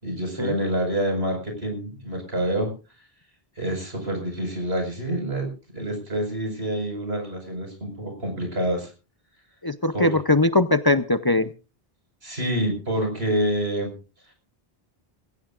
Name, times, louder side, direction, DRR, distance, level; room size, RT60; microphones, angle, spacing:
voice 1, 0.0-2.7 3.6-5.5 5.7-8.9 9.9-10.1 12.2-13.9, right 1 dB, 85° right, 3 dB, 5.6 m, -27 dB
voice 2, 9.6-11.5, left 2 dB, 25° left, 11 dB, 0.6 m, -20 dB
22.0 x 16.5 x 2.5 m, 0.33 s
omnidirectional pair, 1.0 m